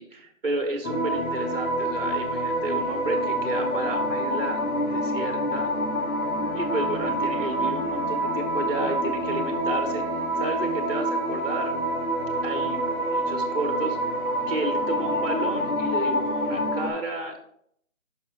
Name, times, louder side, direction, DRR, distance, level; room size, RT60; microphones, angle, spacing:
voice 1, 0.0-4.6 4.9-5.7 6.5-10.0 10.4-11.7 12.4-14.0 14.5-17.4, right 2 dB, 40° right, 4 dB, 1.3 m, -32 dB
sound 1, 0.8-16.9, equal, 85° left, 1.7 m, -27 dB
6.0 x 4.7 x 4.6 m, 0.67 s
figure-of-eight pair, 170°, 42 cm